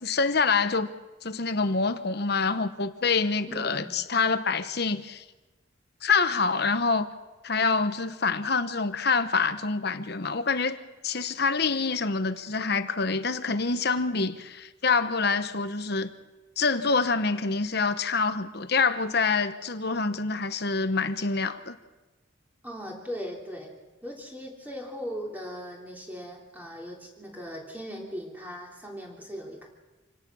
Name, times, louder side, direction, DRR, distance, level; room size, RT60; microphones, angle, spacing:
voice 1, 0.0-0.9 1.2-5.2 6.0-7.1 7.4-10.8 11.0-16.1 16.6-21.8, left 4 dB, 55° left, 1.1 m, -26 dB
voice 2, 3.5-3.9 22.6-23.7 24.0-29.7, equal, 10° right, 3.5 m, -38 dB
27.0 x 18.0 x 6.3 m
head